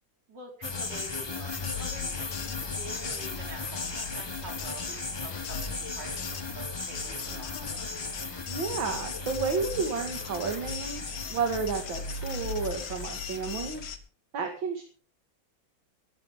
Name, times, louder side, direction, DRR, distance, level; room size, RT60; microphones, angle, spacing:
voice 1, 0.3-7.7, right 2 dB, 60° right, 2 dB, 5.3 m, -46 dB
sound 1, 0.6-13.9, left 4 dB, 30° left, 0.5 m, -37 dB
sound 2, 1.5-14.0, left 5 dB, 70° left, 2.2 m, -39 dB
voice 2, 8.5-13.9 14.3-14.8, right 5 dB, 75° right, 4 dB, 2.7 m, -32 dB
17.5 x 14.5 x 3.7 m, 0.39 s
omnidirectional pair, 2.1 m